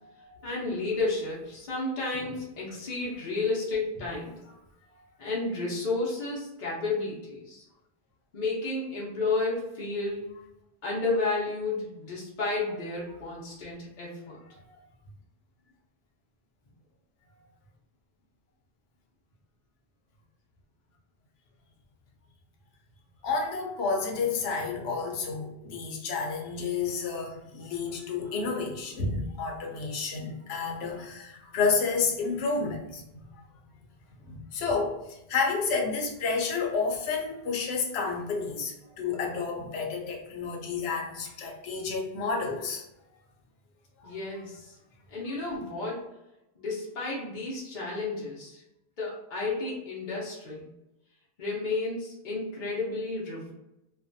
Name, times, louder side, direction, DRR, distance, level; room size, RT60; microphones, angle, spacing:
voice 1, 0.4-4.4 5.2-7.6 8.3-10.3 10.8-14.4 44.0-44.7 45.1-46.1 46.6-48.6 49.0-50.7 51.4-53.5, left 3 dB, 55° left, -5 dB, 0.8 m, -32 dB
voice 2, 23.2-33.4 34.2-42.8 44.0-44.2, left 4 dB, 90° left, 1 dB, 0.9 m, -30 dB
2.5 x 2.2 x 2.5 m, 0.90 s
omnidirectional pair, 1.0 m